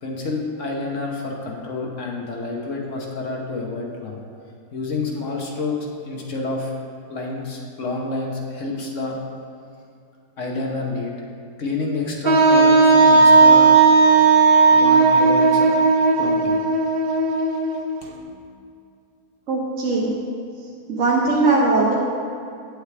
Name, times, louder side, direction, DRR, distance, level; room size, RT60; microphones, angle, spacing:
voice 1, 0.0-4.2 4.7-6.7 7.1-9.2 10.4-11.1 11.6-13.7 14.7-15.7 16.2-16.6, left 3 dB, 55° left, -1 dB, 1.2 m, -28 dB
Wind instrument woodwind instrument, 12.2-18.0, right 4 dB, 80° right, 0.5 m, -15 dB
voice 2, 19.5-20.1 20.9-21.9, right 3 dB, 55° right, -3 dB, 1.1 m, -19 dB
8.1 x 7.9 x 3.3 m, 2.5 s
omnidirectional pair, 1.7 m